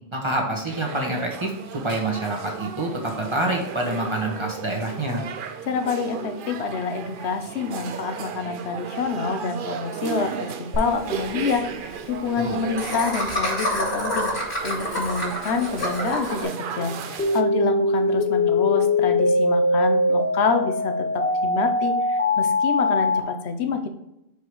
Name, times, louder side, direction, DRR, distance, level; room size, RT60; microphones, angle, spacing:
voice 1, 0.1-5.2 12.4-12.6, right 2 dB, 25° right, 1 dB, 1.2 m, -27 dB
sound 1, 0.7-17.4, right 7 dB, 60° right, 0.7 m, -35 dB
voice 2, 5.6-10.5 10.8-23.9, left 5 dB, 85° left, 7 dB, 1.1 m, -27 dB
Laughter, 10.7-10.8 11.1-11.2 11.4-11.6 12.8-16.4, left 1 dB, 70° left, 2.5 m, -27 dB
sound 2, 17.2-23.2, left 2 dB, 10° left, 0.8 m, -21 dB
5.2 x 4.7 x 4.7 m, 0.86 s
omnidirectional pair, 1.1 m